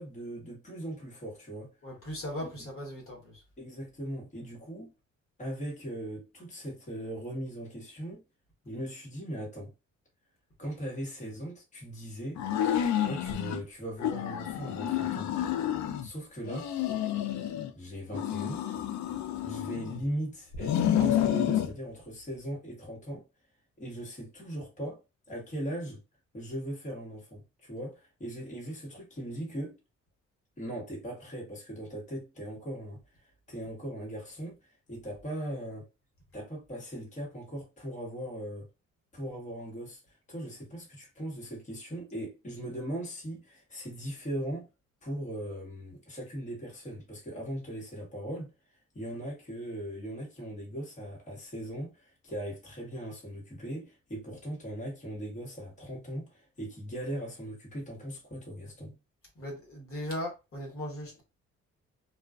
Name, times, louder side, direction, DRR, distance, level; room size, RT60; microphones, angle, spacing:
voice 1, 0.0-1.7 2.4-2.5 3.6-4.9 5.4-8.2 8.6-9.7 10.6-12.4 13.0-15.3 16.0-16.7 17.7-18.6 19.4-23.2 23.8-25.0 25.3-26.0 26.3-29.8 30.6-33.0 33.5-35.9 36.3-38.7 39.1-40.0 40.3-44.7 45.0-48.5 48.9-59.0, right 1 dB, 25° left, 1.2 m, -39 dB
voice 2, 1.8-3.4 59.3-61.2, equal, 45° left, 1.1 m, -38 dB
sound 1, 12.4-13.6 14.0-16.1 16.5-17.7 18.1-20.0 20.5-21.7, left 10 dB, 70° left, 0.5 m, -29 dB
2.3 x 2.3 x 2.3 m
cardioid pair, 90°, 30 cm